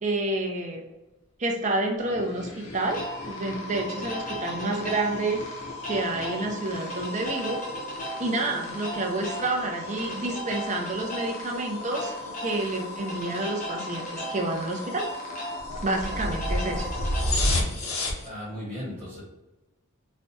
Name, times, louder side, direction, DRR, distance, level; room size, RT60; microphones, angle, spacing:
voice 1, 0.0-0.8 1.4-5.4 5.8-7.6 8.2-12.1 12.4-15.1 15.8-16.9, right 2 dB, 35° right, 1 dB, 0.6 m, -29 dB
sound 1, 2.0-18.3, left 1 dB, 70° left, 0.8 m, -35 dB
sound 2, 2.8-17.2, left 1 dB, 35° left, 0.8 m, -36 dB
voice 2, 18.2-19.2, equal, 10° right, -10 dB, 1.1 m, -36 dB
4.2 x 2.2 x 2.7 m, 1.0 s
head